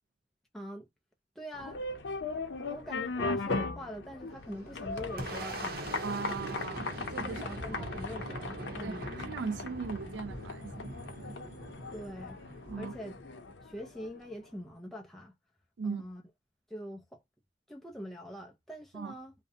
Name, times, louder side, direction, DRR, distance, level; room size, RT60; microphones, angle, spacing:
voice 1, 0.5-0.9 1.4-1.8 2.7-6.3 7.2-9.1 11.9-12.4 12.8-13.1 13.6-15.3 15.8-16.2 16.7-17.2 17.7-19.3, equal, ahead, 0.4 m, -44 dB
sound 1, 1.5-14.3, left 3 dB, 85° left, 0.6 m, -39 dB
Boom, 4.3-13.7, right 1 dB, 60° right, 0.7 m, -42 dB
voice 2, 6.0-7.4 7.7-7.9 8.8-10.9 11.2-11.4 12.7-12.9 15.8-16.0 18.9-19.1, right 5 dB, 85° right, 0.4 m, -38 dB
2.6 x 2.0 x 2.5 m
head